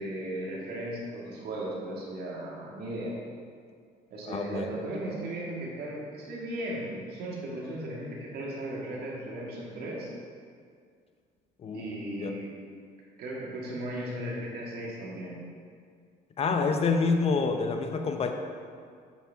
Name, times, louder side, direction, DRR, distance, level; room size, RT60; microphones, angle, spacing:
voice 1, 0.0-3.2 4.1-10.1 11.7-12.5 13.2-15.4, right 1 dB, 70° right, -4 dB, 2.0 m, -36 dB
voice 2, 4.3-4.7 11.6-11.9 12.2-12.3 16.4-18.3, left 4 dB, 35° left, 5 dB, 0.7 m, -27 dB
8.2 x 6.0 x 3.5 m, 2.1 s
cardioid pair, 110°, 17 cm